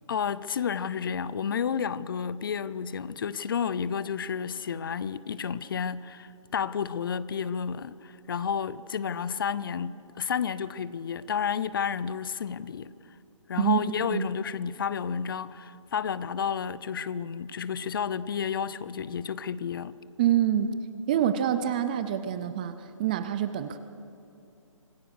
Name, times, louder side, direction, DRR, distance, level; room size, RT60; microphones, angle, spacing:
voice 1, 0.1-12.9 13.5-20.0, left 7 dB, 40° left, 0.7 m, -31 dB
voice 2, 13.6-14.3 20.2-20.7 21.1-23.8, right 10 dB, 15° right, 0.5 m, -26 dB
26.0 x 17.5 x 6.3 m
hypercardioid pair, 160°, 17 cm